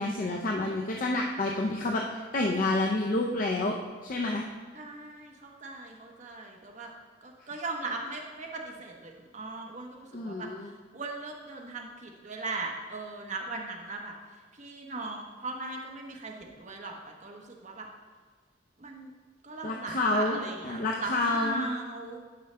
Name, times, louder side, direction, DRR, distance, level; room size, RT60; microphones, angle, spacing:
voice 1, 0.0-3.7 4.0-4.4 10.1-10.7 19.6-20.4 20.6-21.7, left 2 dB, 45° left, 0 dB, 0.6 m, -29 dB
voice 2, 4.7-6.9 7.2-17.9 18.8-19.1 19.4-22.2, right 3 dB, 40° right, 1 dB, 1.0 m, -39 dB
10.5 x 5.5 x 3.3 m, 1.5 s
head